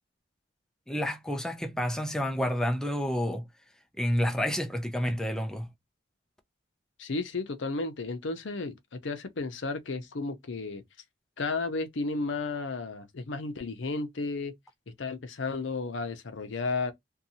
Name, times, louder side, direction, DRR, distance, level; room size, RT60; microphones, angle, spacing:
voice 1, 0.9-3.4 4.0-5.7, equal, 5° left, 0.4 m, -29 dB
voice 2, 7.0-10.8 11.4-14.5 15.0-16.9, left 3 dB, 75° left, 0.6 m, -33 dB
2.7 x 2.3 x 2.7 m
head